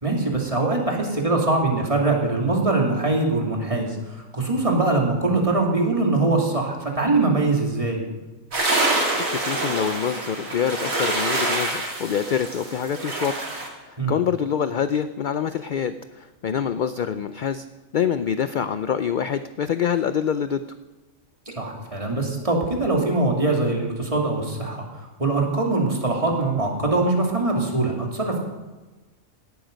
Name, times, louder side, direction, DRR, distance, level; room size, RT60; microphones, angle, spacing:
voice 1, 0.0-8.0 14.0-14.1 21.5-24.8 25.2-28.4, right 2 dB, 25° right, 0 dB, 2.6 m, -22 dB
sound 1, 8.5-13.7, right 2 dB, 85° right, 3.2 m, -26 dB
voice 2, 9.3-17.7 17.9-20.6, left 8 dB, 65° left, 11 dB, 0.5 m, -26 dB
17.0 x 12.0 x 5.2 m, 1.2 s
omnidirectional pair, 1.4 m